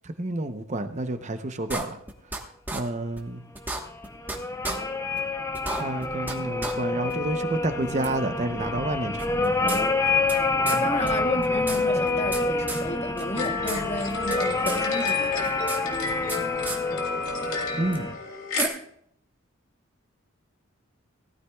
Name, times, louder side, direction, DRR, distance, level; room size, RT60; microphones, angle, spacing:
voice 1, 0.2-2.0 2.7-3.4 5.7-9.6 10.6-10.8 17.8-18.1, right 2 dB, 35° right, 0.7 m, -29 dB
sound 1, 1.7-2.4 2.7-2.8 3.2-3.3 3.6-4.4 4.6-4.8 5.2-5.3 5.5-6.4 6.6-6.7 7.1-7.2 8.0-8.1 9.2-10.4 10.7-10.8 11.1-11.2 11.4-12.4 12.7-12.8 13.2-13.8 14.1-14.8 15.1-16.4 16.7-16.8 17.9-18.0 18.6-18.7, right 2 dB, 10° right, 1.2 m, -32 dB
sound 2, 3.8-18.1, left 3 dB, 15° left, 0.5 m, -27 dB
voice 2, 10.7-15.6, left 2 dB, 30° left, 1.0 m, -32 dB
sound 3, 13.3-18.7, left 4 dB, 85° left, 2.6 m, -31 dB
18.0 x 12.5 x 2.3 m
head